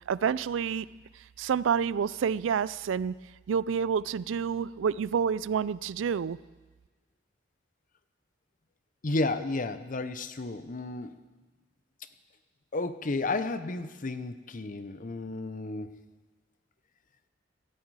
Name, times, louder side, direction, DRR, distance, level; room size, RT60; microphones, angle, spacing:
voice 1, 0.1-0.9 1.4-3.1 3.5-6.4, right 7 dB, 85° right, 20 dB, 0.4 m, -28 dB
voice 2, 9.0-11.1 12.7-16.0, left 2 dB, 45° left, 11 dB, 0.7 m, -32 dB
17.0 x 13.0 x 4.8 m, 1.3 s
head